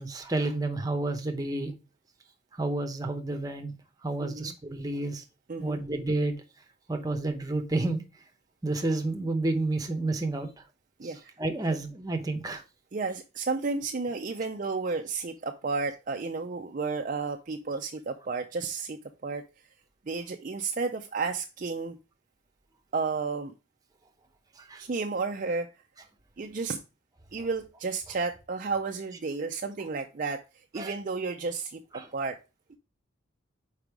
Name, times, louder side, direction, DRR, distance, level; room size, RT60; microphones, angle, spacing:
voice 1, 0.0-1.7 2.6-3.7 4.0-5.2 5.6-6.4 6.9-8.0 8.6-10.5 11.0-11.1 11.4-12.6 24.7-24.8 27.4-27.5 30.8-30.9 31.9-32.1, right 2 dB, 20° right, 5 dB, 0.8 m, -30 dB
voice 2, 4.2-4.5 5.5-5.8 11.0-11.2 12.9-19.4 20.1-22.0 22.9-23.5 24.8-25.7 26.4-26.8 27.3-30.4 30.7-31.8 32.1-32.4, right 4 dB, 40° right, 4 dB, 0.4 m, -32 dB
5.2 x 4.8 x 4.7 m, 0.30 s
head